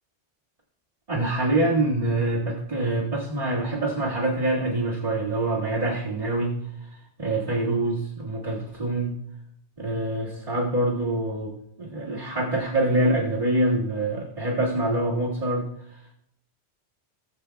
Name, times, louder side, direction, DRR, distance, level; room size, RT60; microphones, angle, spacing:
voice 1, 1.1-6.6 6.9-9.1 9.8-16.0, right 1 dB, 30° right, -9 dB, 2.0 m, -25 dB
19.5 x 7.4 x 2.3 m, 0.76 s
omnidirectional pair, 1.2 m